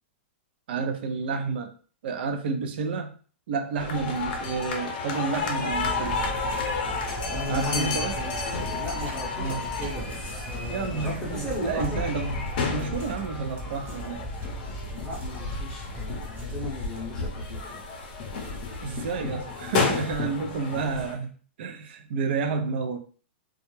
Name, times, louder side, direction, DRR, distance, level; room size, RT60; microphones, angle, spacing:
voice 1, 0.7-1.7 2.0-3.2 3.5-6.2 7.5-8.2 9.4-9.6 10.7-12.4 12.7-14.2 18.8-21.3 21.6-23.0, right 4 dB, 60° right, 6 dB, 0.5 m, -30 dB
sound 1, 3.8-21.1, left 4 dB, 50° left, 0.6 m, -32 dB
sound 2, 5.7-20.3, right 1 dB, 30° right, 0.8 m, -39 dB
voice 2, 7.3-8.4 8.7-12.1 14.9-17.8 20.7-21.0, left 1 dB, 10° left, -5 dB, 0.6 m, -36 dB
2.3 x 2.0 x 3.0 m, 0.40 s
hypercardioid pair, 155°, 6 cm